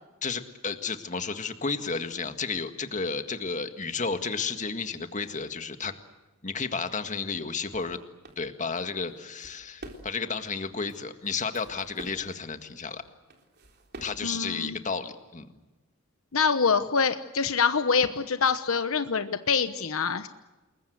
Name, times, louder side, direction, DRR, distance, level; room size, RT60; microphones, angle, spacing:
voice 1, 0.2-5.9 6.4-8.0 8.4-13.0 14.0-15.5, left 4 dB, 35° left, 8 dB, 1.8 m, -32 dB
sound 1, 7.3-7.4 7.7-8.0 8.2-8.4 9.0-10.3 10.7-11.0 11.2-12.3 13.0-14.3, right 1 dB, 50° right, 3.7 m, -47 dB
voice 2, 14.2-14.8 16.3-20.3, left 5 dB, 65° left, 10 dB, 1.1 m, -25 dB
28.5 x 21.5 x 8.0 m, 1.1 s
head